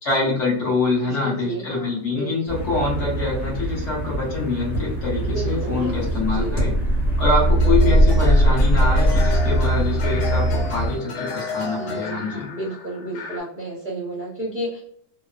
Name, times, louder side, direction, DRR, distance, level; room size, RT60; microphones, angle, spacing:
voice 1, 0.0-6.7 7.2-12.5, left 3 dB, 50° left, -4 dB, 1.1 m, -25 dB
voice 2, 1.0-2.4 5.2-6.6 11.8-14.8, right 1 dB, 55° right, -5 dB, 0.5 m, -32 dB
sound 1, 2.5-11.0, right 1 dB, 25° left, 1.1 m, -20 dB
sound 2, 6.2-6.3 7.6-12.1, left 4 dB, 70° left, 1.1 m, -32 dB
sound 3, 8.2-13.4, left 5 dB, 90° left, 1.3 m, -39 dB
3.0 x 2.0 x 2.4 m, 0.62 s
omnidirectional pair, 1.9 m